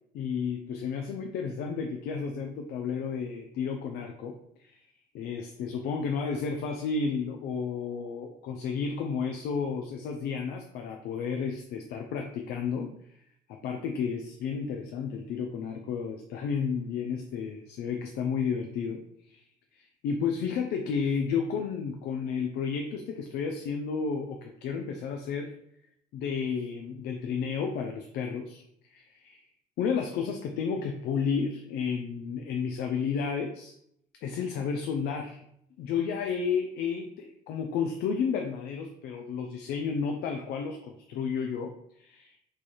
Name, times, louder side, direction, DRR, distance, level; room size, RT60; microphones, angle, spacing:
voice 1, 0.1-4.9 5.1-25.5 26.1-29.4 29.8-33.7 34.2-35.4 35.8-42.4, left 6 dB, 75° left, 4 dB, 0.4 m, -32 dB
3.2 x 2.3 x 4.1 m, 0.74 s
cardioid pair, 110°, 17 cm